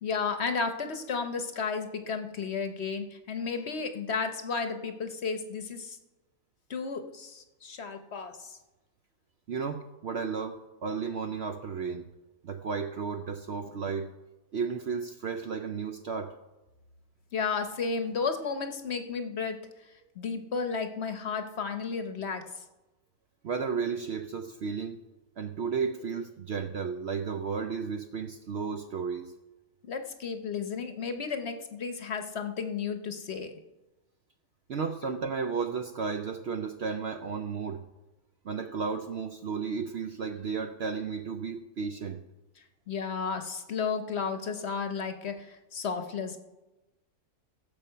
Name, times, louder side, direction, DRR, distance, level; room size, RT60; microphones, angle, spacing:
voice 1, 0.0-6.0 6.7-8.6 17.3-19.6 20.2-22.5 29.8-33.6 42.9-46.4, left 5 dB, 50° left, 8 dB, 1.0 m, -33 dB
voice 2, 9.5-12.1 12.4-14.1 14.5-16.3 23.4-25.0 25.4-29.3 34.7-37.8 38.4-42.2, right 5 dB, 60° right, 7 dB, 0.7 m, -33 dB
16.0 x 7.1 x 5.6 m, 1.1 s
omnidirectional pair, 1.6 m